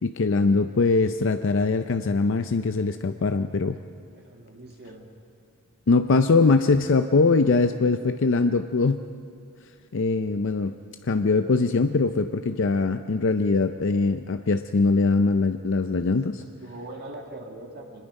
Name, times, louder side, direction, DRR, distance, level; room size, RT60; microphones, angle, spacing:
voice 1, 0.0-3.8 5.9-9.0 9.9-10.7 11.0-16.4, left 3 dB, 60° left, 9 dB, 0.5 m, -22 dB
voice 2, 4.1-5.1 16.1-18.0, right 1 dB, 50° right, 1 dB, 1.8 m, -42 dB
24.0 x 20.5 x 5.3 m, 2.3 s
head